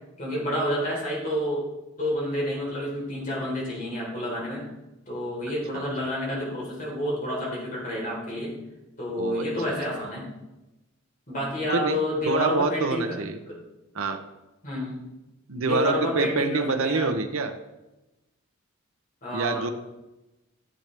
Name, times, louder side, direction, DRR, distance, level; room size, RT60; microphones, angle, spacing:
voice 1, 0.2-1.6 2.0-4.6 5.1-8.5 9.0-10.3 11.3-13.2 13.5-13.6 14.6-15.0 15.6-17.1 19.2-19.6, left 1 dB, 35° left, -4 dB, 3.8 m, -29 dB
voice 2, 9.2-9.7 11.7-13.4 13.9-14.2 15.5-17.5 19.3-19.7, right 3 dB, 70° right, 7 dB, 0.8 m, -27 dB
15.0 x 7.5 x 3.4 m, 1.0 s
head